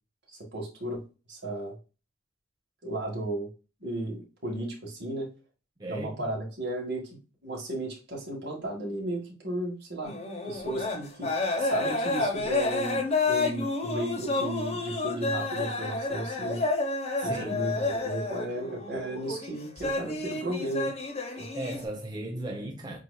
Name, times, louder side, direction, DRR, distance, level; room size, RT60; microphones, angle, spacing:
voice 1, 0.3-1.0 1.3-1.7 2.8-3.5 3.8-5.3 5.9-10.2 10.5-16.6 17.2-20.9 21.4-21.5, right 1 dB, 60° right, 1.8 m, -34 dB
voice 2, 5.8-6.2 17.2-17.7 21.5-23.0, right 1 dB, 20° right, 0.7 m, -36 dB
sound 1, 10.0-21.8, left 3 dB, 35° left, 0.9 m, -30 dB
7.5 x 2.7 x 2.3 m
head